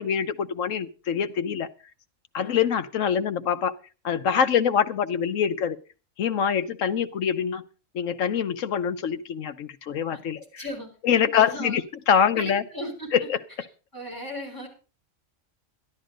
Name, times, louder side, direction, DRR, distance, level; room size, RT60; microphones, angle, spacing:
voice 1, 0.0-1.7 2.3-3.7 4.0-5.8 6.2-7.6 7.9-10.4 11.0-11.8 12.1-12.6 13.1-13.4, left 8 dB, 90° left, 11 dB, 1.2 m, -24 dB
voice 2, 10.1-10.9 11.3-11.8 12.3-13.1 13.9-14.7, equal, 15° left, -1 dB, 4.5 m, -36 dB
12.5 x 11.5 x 5.0 m, 0.35 s
omnidirectional pair, 1.3 m